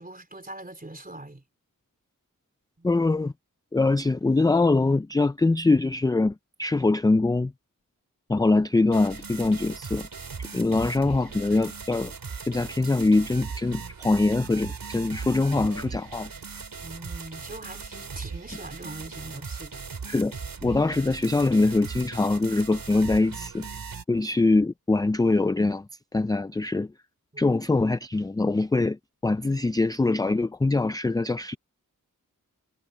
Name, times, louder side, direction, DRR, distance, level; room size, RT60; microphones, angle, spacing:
voice 1, 0.0-1.4 2.8-3.0 16.8-20.1 27.3-27.4, right 2 dB, 25° right, 3.7 m, -42 dB
voice 2, 2.8-3.3 3.7-7.5 8.3-10.1 10.4-12.1 12.5-16.3 20.1-20.3 20.6-23.7 24.1-25.9 26.1-26.9 27.4-31.6, left 3 dB, 10° left, 0.4 m, -23 dB
sound 1, 8.9-24.0, right 5 dB, 75° right, 3.4 m, -38 dB
wide cardioid pair, 70°, 34 cm